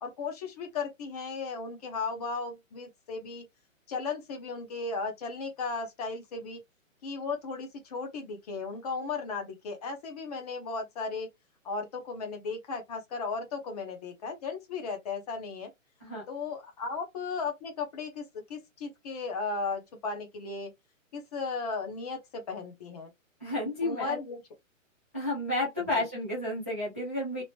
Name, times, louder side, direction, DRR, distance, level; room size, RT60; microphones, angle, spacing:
voice 1, 0.0-3.4 3.9-6.6 7.0-11.3 11.6-15.7 16.3-20.7 21.1-23.1 23.8-24.4 25.9-26.1, left 4 dB, 30° left, 0.6 m, -36 dB
voice 2, 23.4-24.2 25.1-27.4, left 1 dB, 10° right, 0.3 m, -31 dB
2.9 x 2.0 x 2.9 m
hypercardioid pair, 150°, 40 cm